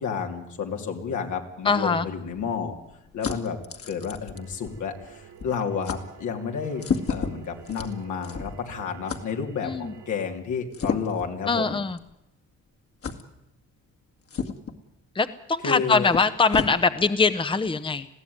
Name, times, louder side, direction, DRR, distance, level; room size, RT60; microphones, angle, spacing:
voice 1, 0.0-2.7 3.1-3.6 3.8-6.8 7.1-11.8 15.6-16.1, left 6 dB, 75° left, 3 dB, 3.1 m, -31 dB
voice 2, 1.6-2.0 9.6-9.9 11.5-12.0 15.1-18.1, left 4 dB, 15° left, 12 dB, 0.9 m, -23 dB
sound 1, 1.8-5.1 5.4-5.6 5.8-6.0 6.8-8.7 9.1-9.2 10.7-11.3 12.0-12.1 13.0-13.2 14.3-14.8 15.7-15.8 16.1-16.7, left 5 dB, 50° left, 2.2 m, -32 dB
sound 2, 4.3-10.1, right 8 dB, 70° right, 2.2 m, -48 dB
21.0 x 15.5 x 9.6 m, 0.82 s
cardioid pair, 90°, 30 cm